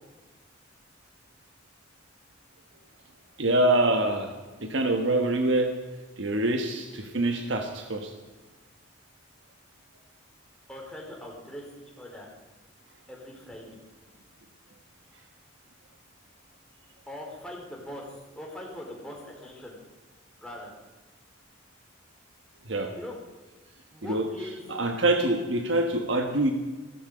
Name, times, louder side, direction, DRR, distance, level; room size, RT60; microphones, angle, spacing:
voice 1, 3.4-4.3 4.6-5.7 6.2-8.1 22.7-22.9 24.0-24.3 24.7-26.5, right 2 dB, 60° right, 4 dB, 1.3 m, -25 dB
voice 2, 10.7-11.6 12.0-12.3 13.1-13.8 17.1-18.0 18.3-19.8 20.4-20.7 22.9-23.2 23.9-24.7, left 1 dB, 5° left, -2 dB, 3.6 m, -41 dB
16.0 x 15.5 x 5.1 m, 1.3 s
head